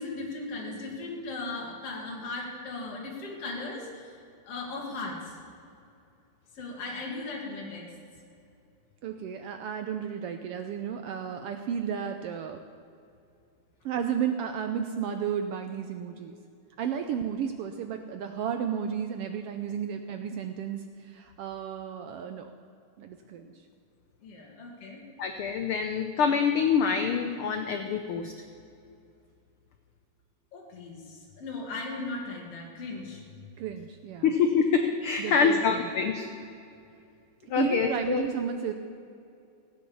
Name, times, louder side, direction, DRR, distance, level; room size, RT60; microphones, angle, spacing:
voice 1, 0.0-4.2 4.4-5.4 6.5-7.9 24.2-25.0 30.5-33.2, left 3 dB, 55° left, -1 dB, 3.3 m, -37 dB
voice 2, 9.0-12.6 13.8-16.4 16.8-22.5 23.0-23.6 33.6-34.3 35.2-35.8 37.6-38.7, right 8 dB, 80° right, 6 dB, 1.3 m, -33 dB
voice 3, 25.2-28.3 34.2-36.3 37.5-38.2, left 6 dB, 75° left, 5 dB, 1.2 m, -25 dB
15.5 x 9.1 x 7.0 m, 2.5 s
omnidirectional pair, 3.4 m